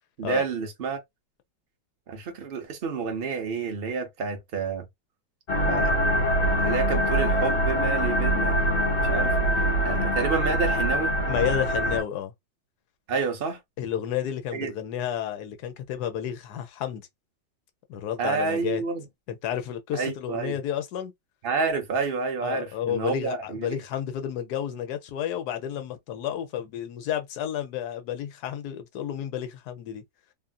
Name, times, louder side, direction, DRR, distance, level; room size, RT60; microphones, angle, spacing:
voice 1, 0.2-1.0 2.1-4.8 5.7-6.0 6.6-8.5 9.0-9.4 9.8-11.1 13.1-13.6 14.5-14.7 18.2-19.0 19.9-20.5 21.4-23.7, right 5 dB, 60° right, 0.5 m, -29 dB
sound 1, 5.5-12.0, equal, 50° left, 0.9 m, -24 dB
voice 2, 11.3-12.3 13.8-17.1 17.9-18.8 19.3-21.1 22.4-30.0, left 10 dB, 65° left, 1.2 m, -31 dB
3.1 x 2.6 x 2.3 m
omnidirectional pair, 2.0 m